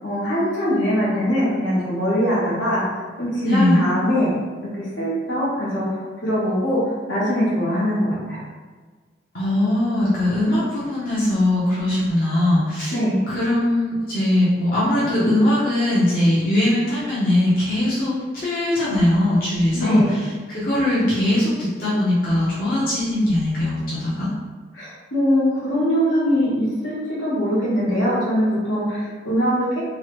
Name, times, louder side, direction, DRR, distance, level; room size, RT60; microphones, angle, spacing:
voice 1, 0.0-2.8 3.2-4.3 4.8-6.8 7.1-8.4 12.9-13.3 19.7-20.2 24.7-29.8, equal, 80° left, -8 dB, 1.3 m, -22 dB
voice 2, 3.4-3.8 9.3-12.9 13.3-24.3, left 1 dB, 45° left, -9 dB, 0.7 m, -20 dB
3.0 x 2.4 x 3.1 m, 1.4 s
head